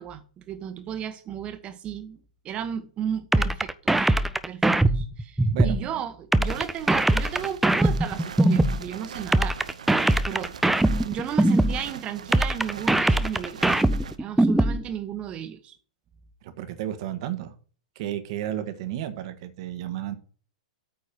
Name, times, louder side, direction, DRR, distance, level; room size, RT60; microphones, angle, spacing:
voice 1, 0.0-4.1 4.5-9.6 10.2-10.6 11.0-13.8 14.2-15.8, right 9 dB, 30° right, 1.3 m, -34 dB
sound 1, 3.3-5.8 6.3-8.8 9.3-11.8 12.3-14.8, right 1 dB, 5° right, 0.5 m, -21 dB
voice 2, 5.5-6.0 16.4-17.5 17.9-20.2, right 11 dB, 55° right, 1.4 m, -32 dB
sound 2, 6.5-14.2, right 7 dB, 75° right, 0.7 m, -41 dB
8.9 x 4.6 x 5.4 m
hypercardioid pair, 105°, 4 cm